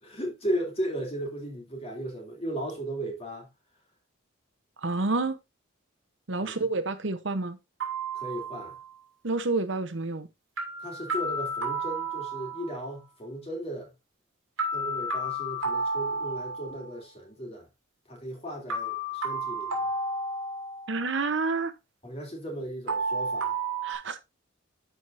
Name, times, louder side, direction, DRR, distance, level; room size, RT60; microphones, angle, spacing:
voice 1, 0.0-3.5 6.4-6.6 8.1-8.8 10.8-13.9 14.7-17.7 18.1-19.9 22.0-23.6, right 1 dB, 30° left, 2.9 m, -36 dB
voice 2, 4.8-5.4 6.3-7.6 9.2-10.3 20.9-21.7 23.8-24.2, right 3 dB, 65° right, 0.9 m, -29 dB
sound 1, 7.8-8.9 10.6-12.9 14.6-16.9 18.7-21.0 22.9-24.0, right 2 dB, 80° right, 2.9 m, -32 dB
12.5 x 4.8 x 2.6 m
head